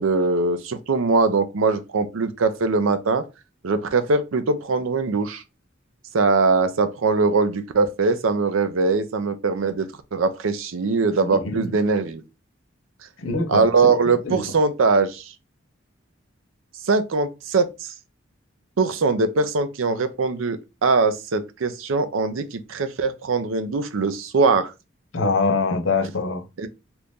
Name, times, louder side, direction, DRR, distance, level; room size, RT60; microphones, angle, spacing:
voice 1, 0.0-3.2 3.6-5.4 6.1-12.2 13.5-15.3 16.8-17.7 18.8-24.7 26.6-26.7, right 4 dB, 90° right, 0.5 m, -21 dB
voice 2, 11.2-11.7 13.2-13.6 13.9-14.0 14.2-14.4 25.1-26.4, left 3 dB, 90° left, 0.8 m, -24 dB
2.9 x 2.6 x 3.5 m
head